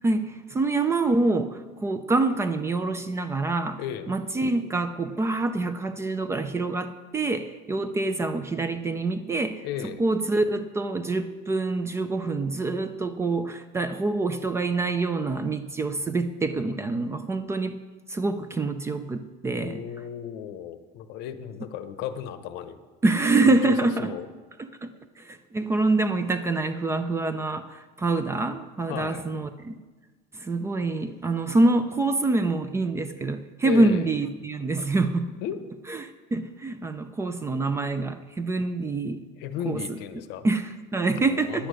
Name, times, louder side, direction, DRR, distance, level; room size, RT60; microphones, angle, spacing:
voice 1, 0.0-9.6 10.0-17.8 18.1-19.8 23.0-24.1 24.6-29.8 30.3-35.3 35.9-39.3 39.7-40.0 40.4-41.7, right 2 dB, 15° right, 10 dB, 0.4 m, -26 dB
voice 2, 3.8-4.1 9.6-10.0 19.5-22.8 23.4-24.3 28.9-29.2 33.6-34.1 35.4-35.6 39.4-40.4 41.1-41.7, left 10 dB, 60° left, 12 dB, 0.8 m, -35 dB
10.0 x 8.5 x 6.3 m, 1.3 s
cardioid pair, 155°, 19 cm